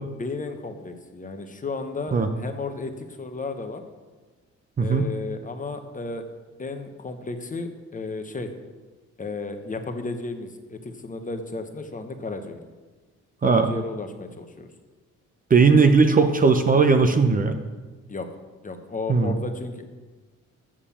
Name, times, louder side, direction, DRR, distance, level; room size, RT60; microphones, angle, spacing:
voice 1, 0.2-3.8 4.8-6.2 6.6-8.5 9.2-12.6 13.4-14.7 18.1-18.3 18.6-19.8, left 3 dB, 25° left, 7 dB, 1.0 m, -33 dB
voice 2, 4.8-5.1 13.4-13.7 15.5-17.6 19.1-19.3, right 4 dB, 30° right, 7 dB, 0.7 m, -18 dB
7.4 x 6.5 x 7.2 m, 1.3 s
cardioid pair, 90°, 30 cm